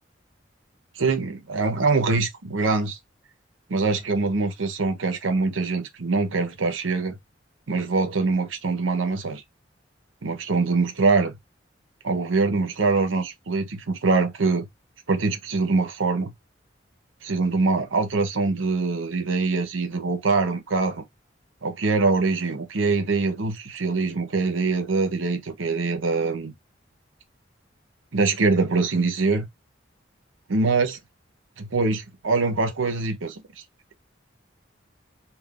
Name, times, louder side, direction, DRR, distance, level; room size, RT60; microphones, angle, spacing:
voice 1, 1.0-3.0 3.7-7.2 7.7-9.4 10.2-11.4 12.0-14.7 15.1-16.3 17.2-21.0 21.6-26.5 28.1-29.5 30.5-31.0 31.6-33.4, right 3 dB, 90° right, 0.7 m, -23 dB
3.7 x 2.3 x 2.3 m
head